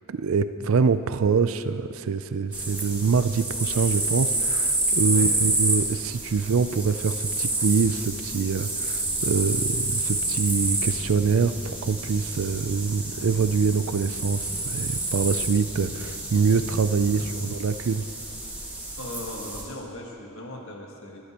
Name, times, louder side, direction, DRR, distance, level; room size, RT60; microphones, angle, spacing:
voice 1, 0.1-18.1, right 5 dB, 65° right, 12 dB, 0.4 m, -25 dB
sound 1, 2.5-19.6, right 2 dB, 5° right, 1.6 m, -29 dB
sound 2, 9.0-17.4, equal, 85° left, 2.6 m, -44 dB
voice 2, 19.0-21.3, left 1 dB, 65° left, 0 dB, 1.5 m, -38 dB
19.5 x 11.5 x 3.0 m, 2.8 s
head